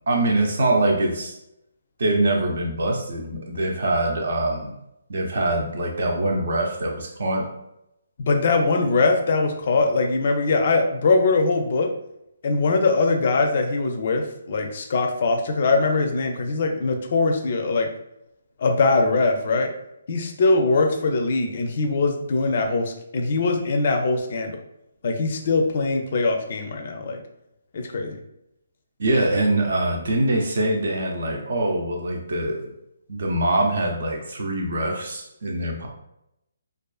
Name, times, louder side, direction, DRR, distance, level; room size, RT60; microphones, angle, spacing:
voice 1, 0.1-1.4 2.0-4.7 5.1-7.5 29.0-32.7 33.1-35.9, right 1 dB, 65° right, 1 dB, 0.6 m, -23 dB
voice 2, 8.2-11.9 12.4-17.9 18.6-19.7 20.1-24.6 25.0-27.2 27.7-28.2, left 3 dB, 50° left, 4 dB, 0.4 m, -22 dB
2.4 x 2.4 x 2.3 m, 0.83 s
hypercardioid pair, 160°, 0 cm